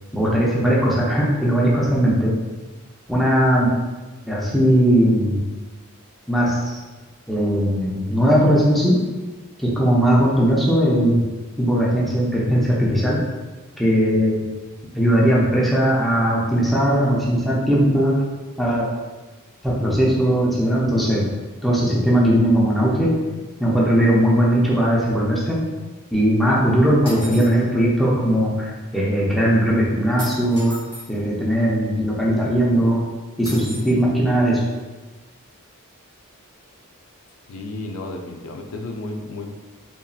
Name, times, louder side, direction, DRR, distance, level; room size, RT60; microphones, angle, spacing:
voice 1, 0.1-2.3 3.1-3.7 4.3-5.4 6.3-6.8 7.3-9.0 9.6-11.2 11.6-13.2 13.8-14.4 14.9-18.1 18.6-18.9 19.6-21.3 21.6-23.1 23.6-25.6 26.1-30.8 31.1-33.0 33.4-34.6, equal, ahead, -6 dB, 0.5 m, -18 dB
sound 1, 27.1-27.6 30.2-31.1 33.4-33.9, equal, 20° right, 1.2 m, -36 dB
voice 2, 37.5-39.5, left 2 dB, 70° left, 2 dB, 0.4 m, -32 dB
2.9 x 2.6 x 2.3 m, 1.2 s
head